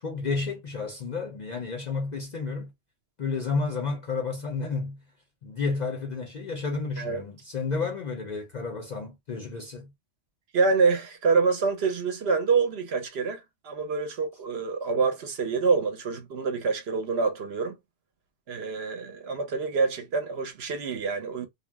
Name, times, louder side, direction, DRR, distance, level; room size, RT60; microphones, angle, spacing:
voice 1, 0.0-2.7 3.2-5.0 5.4-9.9, left 4 dB, 50° left, 0.5 m, -31 dB
voice 2, 10.5-17.8 18.5-21.5, right 4 dB, 65° right, 0.9 m, -26 dB
2.4 x 2.1 x 3.2 m
omnidirectional pair, 1.2 m